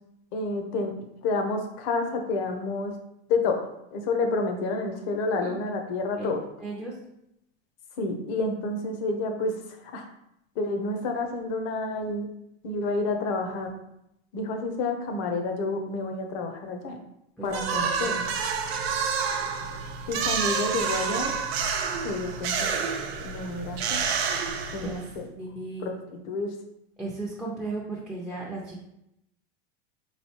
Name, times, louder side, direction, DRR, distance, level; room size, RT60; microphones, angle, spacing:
voice 1, 0.3-2.9 3.3-6.4 8.0-10.1 10.6-12.3 12.6-13.7 14.3-17.0 17.4-18.2 20.1-21.4 22.0-22.7 23.2-24.0 24.7-25.3 25.8-26.5, left 3 dB, 55° left, 4 dB, 0.9 m, -29 dB
voice 2, 6.6-7.0 17.4-17.5 18.0-18.4 24.4-25.1 25.4-25.9 27.0-28.8, right 3 dB, ahead, -3 dB, 0.6 m, -36 dB
sound 1, 17.5-25.2, right 6 dB, 70° right, 0.7 m, -29 dB
3.9 x 3.3 x 2.9 m, 0.81 s
hypercardioid pair, 110°, 32 cm